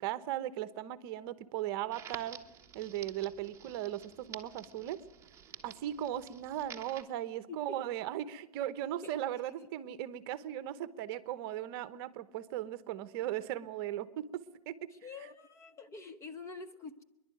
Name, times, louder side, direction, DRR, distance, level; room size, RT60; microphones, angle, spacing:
voice 1, 0.0-2.4 2.7-5.0 5.6-14.9, right 12 dB, 40° right, 1.0 m, -37 dB
Crackle, 1.9-7.0, right 8 dB, 15° right, 1.3 m, -50 dB
voice 2, 14.9-17.0, left 4 dB, 15° left, 0.7 m, -46 dB
27.0 x 11.0 x 9.2 m
hypercardioid pair, 140°, 19 cm